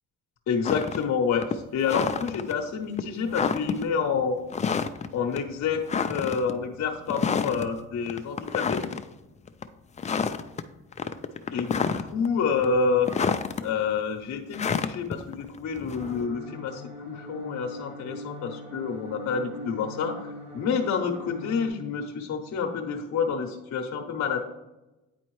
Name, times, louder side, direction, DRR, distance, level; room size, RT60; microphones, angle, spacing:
voice 1, 0.5-4.4 5.1-8.8 11.5-13.4 13.6-24.4, left 5 dB, 65° left, 3 dB, 0.8 m, -28 dB
sound 1, 0.6-1.0 1.4-2.5 3.0-3.1 3.3-3.8 4.5-5.1 5.4-5.5 5.9-6.5 7.1-7.7 8.1-9.0 9.5-9.6 10.0-10.6 10.9-12.3 12.6-13.6 14.5-16.3, left 6 dB, 25° left, 0.3 m, -28 dB
sound 2, 15.9-21.7, left 1 dB, 20° right, 1.5 m, -41 dB
9.1 x 4.2 x 3.1 m, 1.0 s
cardioid pair, 90°, 30 cm